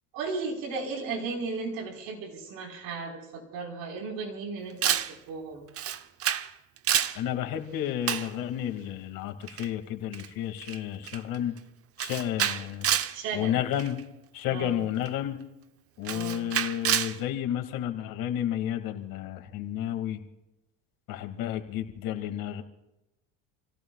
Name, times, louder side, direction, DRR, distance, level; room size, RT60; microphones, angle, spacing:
voice 1, 0.1-5.7 13.1-13.6 14.5-14.8 16.0-16.4, right 4 dB, 75° right, 1 dB, 4.9 m, -35 dB
Camera, 4.8-5.1 5.8-6.5 6.8-7.2 8.1-8.3 9.5-9.7 10.1-10.3 10.6-10.8 11.1-11.4 12.0-13.2 13.8-14.0 15.1-15.2 16.0-17.2, right 10 dB, 40° right, 0.9 m, -28 dB
voice 2, 7.1-11.5 12.0-12.9 13.3-14.0 14.3-15.4 16.0-20.2 21.1-22.6, left 11 dB, 65° left, 6 dB, 2.4 m, -31 dB
29.5 x 17.5 x 2.4 m, 0.94 s
cardioid pair, 120°, 36 cm